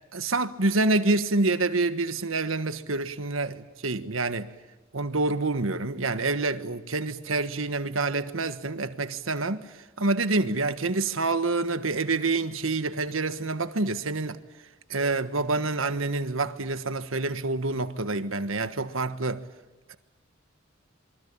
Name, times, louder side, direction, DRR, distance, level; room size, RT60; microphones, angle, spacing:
voice 1, 0.1-4.5 4.9-9.7 10.0-14.4 14.9-19.4 19.9-20.0, right 3 dB, 80° right, 1.5 m, -27 dB
27.0 x 24.0 x 8.8 m
head